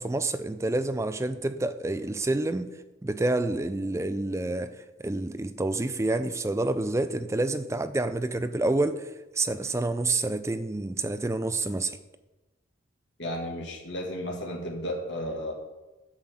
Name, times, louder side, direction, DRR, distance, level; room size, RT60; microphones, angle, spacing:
voice 1, 0.0-2.7 3.0-4.8 5.0-9.1 9.4-12.0, right 2 dB, 15° right, 0.4 m, -28 dB
voice 2, 13.2-15.5, left 1 dB, 55° left, 1.8 m, -33 dB
8.8 x 5.8 x 7.6 m
head